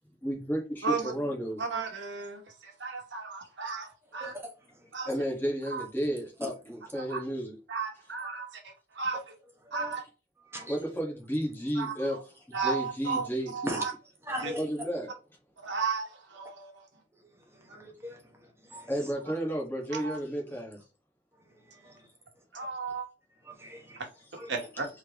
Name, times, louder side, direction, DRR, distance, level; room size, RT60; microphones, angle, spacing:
voice 1, 0.2-1.6 5.0-7.5 10.7-12.2 12.5-13.8 14.6-15.1 18.9-20.8, equal, 10° left, 1.5 m, -32 dB
voice 2, 1.6-4.3 4.9-5.1 5.7-5.8 6.9-7.2 7.7-9.2 9.7-10.0 11.8-12.2 12.5-13.9 14.4-14.5 15.6-16.9 19.9-20.2 22.5-23.1 24.0-24.1 24.5-24.9, right 4 dB, 75° right, 1.3 m, -34 dB
voice 3, 4.1-4.5 4.8-4.9 6.4-6.5 9.7-9.9 10.5-10.8 13.7-13.9 14.3-14.6 17.5-18.9 21.5-22.1 22.6-22.7 23.4-24.0 24.3-24.5, equal, 15° right, 1.1 m, -40 dB
4.4 x 3.6 x 3.0 m
head